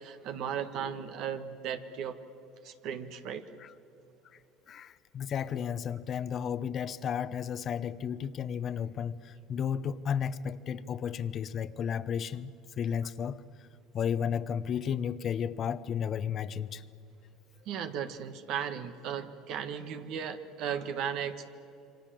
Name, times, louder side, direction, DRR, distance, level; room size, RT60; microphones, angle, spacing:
voice 1, 0.0-2.2 2.6-3.4 17.6-21.5, right 8 dB, 65° right, 1.6 m, -36 dB
voice 2, 4.7-13.7 13.9-16.8, left 8 dB, 45° left, 0.9 m, -33 dB
28.0 x 24.0 x 7.8 m
supercardioid pair, 110°, 0 cm